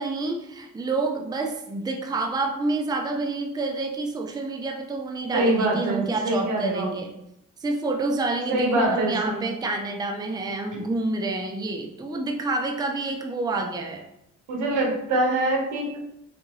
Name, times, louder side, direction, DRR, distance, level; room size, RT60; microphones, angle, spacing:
voice 1, 0.0-7.1 7.6-14.0, right 3 dB, 15° right, 3 dB, 0.5 m, -28 dB
voice 2, 5.3-6.9 8.5-9.5 14.5-16.0, right 1 dB, 80° right, -1 dB, 1.3 m, -24 dB
4.1 x 3.5 x 3.1 m, 0.82 s
cardioid pair, 90°, 30 cm